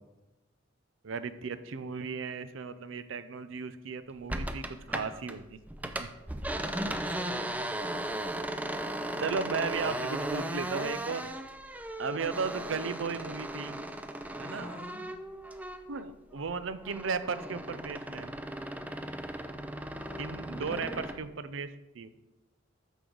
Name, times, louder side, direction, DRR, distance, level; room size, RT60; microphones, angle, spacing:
voice 1, 1.0-6.1 9.2-11.3 12.0-13.8 14.4-14.7 15.9-18.3 20.2-22.1, right 5 dB, 75° right, 13 dB, 0.5 m, -35 dB
sound 1, 4.3-5.4 5.7-16.0 16.4-21.2, right 1 dB, 10° right, 0.4 m, -37 dB
voice 2, 6.5-7.8 14.5-15.1 19.9-21.1, left 1 dB, 25° left, 5 dB, 0.9 m, -45 dB
8.1 x 6.2 x 3.9 m, 1.0 s
head